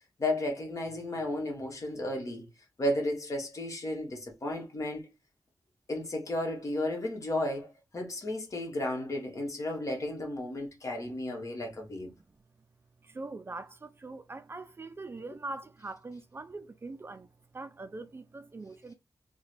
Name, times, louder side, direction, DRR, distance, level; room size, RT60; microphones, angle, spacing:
voice 1, 0.2-2.5 2.8-5.1 5.9-7.7 7.9-12.1, left 1 dB, 45° left, 1.3 m, -33 dB
voice 2, 13.0-17.3 17.5-18.9, right 3 dB, 30° right, 0.4 m, -42 dB
3.7 x 2.2 x 3.2 m
wide cardioid pair, 85°, 7 cm